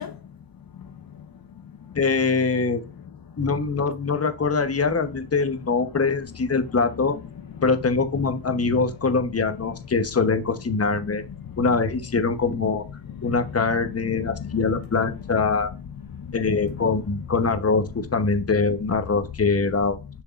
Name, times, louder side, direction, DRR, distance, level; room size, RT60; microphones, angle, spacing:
voice 1, 0.0-2.4 2.8-3.5 4.8-5.0 5.6-6.0 6.5-7.8 8.5-8.8 9.5-9.8 10.9-12.0 12.5-17.4 18.4-18.5 20.0-20.1, left 7 dB, 55° left, 0.6 m, -39 dB
voice 2, 2.0-2.8 3.4-7.2 7.6-11.2 11.6-12.8 13.2-15.7 16.3-20.0, left 4 dB, 35° left, 1.0 m, -23 dB
7.0 x 6.3 x 2.5 m
wide cardioid pair, 90°, 43 cm